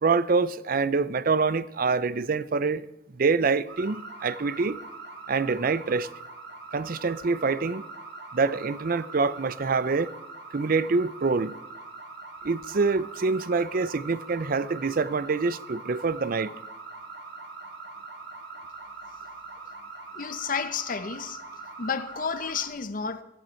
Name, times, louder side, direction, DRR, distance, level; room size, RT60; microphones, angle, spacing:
voice 1, 0.0-2.8 3.1-4.8 5.3-6.1 6.7-7.8 8.3-10.1 10.5-11.5 12.4-16.5, right 4 dB, 55° right, 0.5 m, -25 dB
sound 1, 3.7-22.7, right 3 dB, 70° right, 2.5 m, -42 dB
voice 2, 20.1-21.4 21.8-23.2, left 5 dB, 50° left, 0.8 m, -31 dB
18.0 x 13.0 x 4.5 m
head